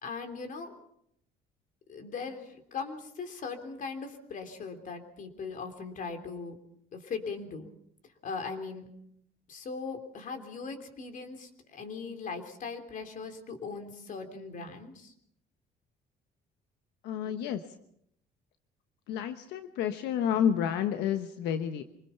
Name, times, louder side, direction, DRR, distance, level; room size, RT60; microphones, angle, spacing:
voice 1, 0.0-0.7 1.9-6.6 6.9-7.7 8.2-8.9 9.5-15.1, left 4 dB, 50° left, 6 dB, 3.5 m, -39 dB
voice 2, 17.0-17.6 19.1-21.8, left 8 dB, 90° left, 8 dB, 1.1 m, -30 dB
25.5 x 20.0 x 5.8 m, 0.74 s
cardioid pair, 110°, 17 cm